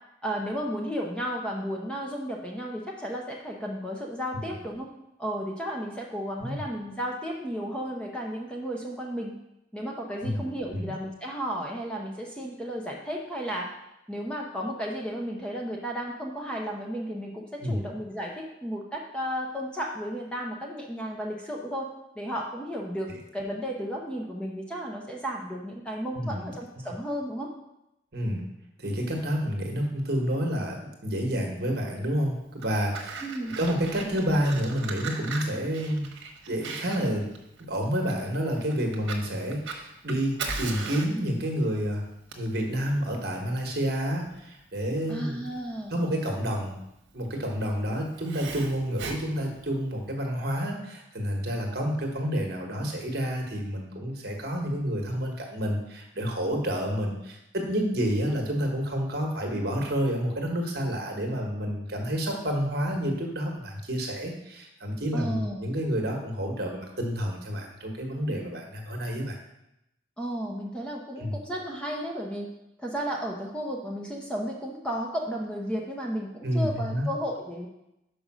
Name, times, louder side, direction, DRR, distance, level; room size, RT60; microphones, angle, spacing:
voice 1, 0.2-4.9 5.2-9.3 9.7-13.7 14.1-21.9 22.2-27.5 33.2-33.6 45.1-45.9 65.1-65.6 70.2-72.5 72.8-77.7, equal, 5° left, -1 dB, 0.7 m, -33 dB
voice 2, 26.1-26.4 26.8-26.9 28.1-28.5 28.8-33.2 33.6-36.1 36.5-37.3 37.6-42.0 42.4-45.5 45.9-46.8 47.1-69.4 71.2-71.3 76.4-77.1, equal, 55° right, 2 dB, 1.3 m, -29 dB
Fire, 32.4-50.1, right 4 dB, 70° right, 1.1 m, -40 dB
5.4 x 5.3 x 6.1 m, 0.86 s
head